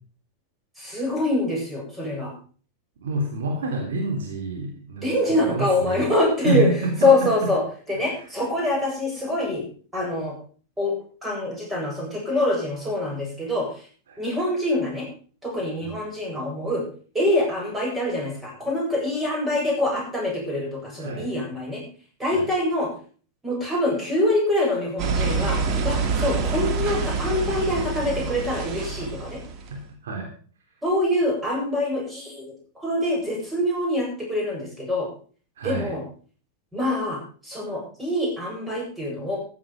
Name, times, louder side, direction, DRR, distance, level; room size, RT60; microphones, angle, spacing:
voice 1, 0.8-2.3 5.0-6.7 7.0-7.6 7.9-9.6 9.9-10.3 10.8-10.9 11.2-13.8 14.2-15.1 15.4-16.8 17.1-21.8 22.2-22.9 23.4-29.4 30.8-35.1 35.6-36.0 36.7-39.4, left 1 dB, 10° right, -2 dB, 8.0 m, -25 dB
voice 2, 3.0-6.0 6.4-7.5 7.9-8.2 14.1-14.2 15.8-16.0 21.0-21.3 22.3-22.5 29.7-30.3 35.6-35.9, right 2 dB, 60° right, 1 dB, 3.4 m, -28 dB
sound 1, 25.0-29.8, right 4 dB, 35° right, 2.3 m, -26 dB
15.0 x 9.7 x 5.3 m, 0.42 s
figure-of-eight pair, 90°, 0 cm